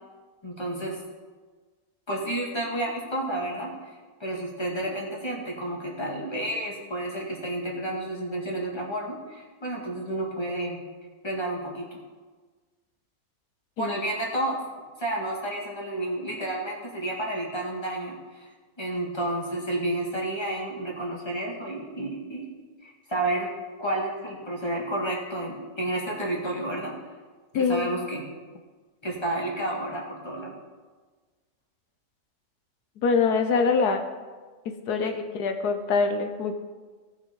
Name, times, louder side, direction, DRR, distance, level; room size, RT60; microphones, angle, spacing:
voice 1, 0.4-1.0 2.1-3.7 4.2-10.8 11.2-12.0 13.8-14.6 15.0-18.5 18.8-22.4 22.8-23.5 23.8-26.9 27.6-28.2 29.0-30.5 35.0-35.1, right 1 dB, 15° left, -3 dB, 2.1 m, -31 dB
voice 2, 27.5-27.9 33.0-34.0 34.9-36.6, left 4 dB, 90° left, 6 dB, 1.5 m, -24 dB
18.0 x 6.2 x 3.9 m, 1.4 s
omnidirectional pair, 1.6 m